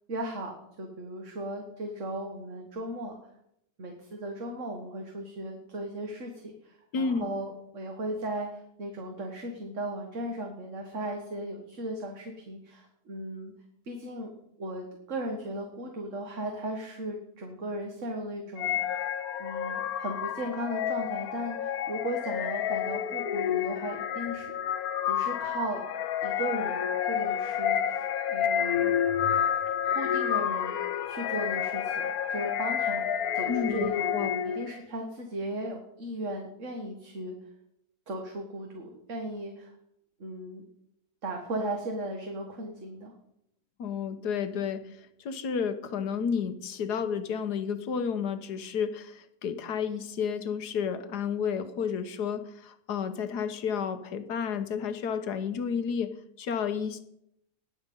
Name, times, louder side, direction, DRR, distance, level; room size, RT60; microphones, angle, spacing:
voice 1, 0.1-3.3 3.8-13.5 13.8-14.3 14.6-19.1 19.4-24.5 25.1-25.8 26.2-28.9 29.9-30.8 31.1-37.3 38.1-39.7 40.2-40.6 41.2-43.1, right 1 dB, 50° right, 2 dB, 1.8 m, -36 dB
voice 2, 6.9-7.3 33.5-34.4 43.8-44.8 45.2-56.1 56.4-57.0, left 6 dB, 90° left, 10 dB, 1.6 m, -31 dB
sound 1, 18.6-34.8, left 9 dB, 70° left, 1.2 m, -29 dB
20.0 x 7.2 x 5.4 m, 0.76 s
omnidirectional pair, 1.7 m